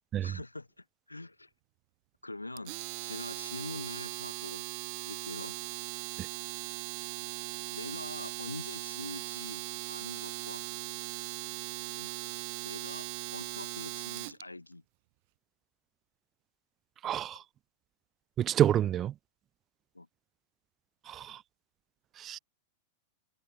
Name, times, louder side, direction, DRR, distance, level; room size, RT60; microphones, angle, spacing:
voice 1, 0.2-1.5 2.2-2.7 3.0-4.7 5.0-5.6 7.7-9.6 9.9-10.6 11.8-12.1 12.6-14.8 19.9-20.1, left 2 dB, 85° left, 4.7 m, -44 dB
Domestic sounds home sounds, 2.6-14.4, right 29 dB, 50° right, 1.9 m, -39 dB
voice 2, 17.0-17.4 18.4-19.1 21.1-21.4 22.2-22.4, right 11 dB, 30° right, 0.7 m, -28 dB
figure-of-eight pair, 95°, 0 cm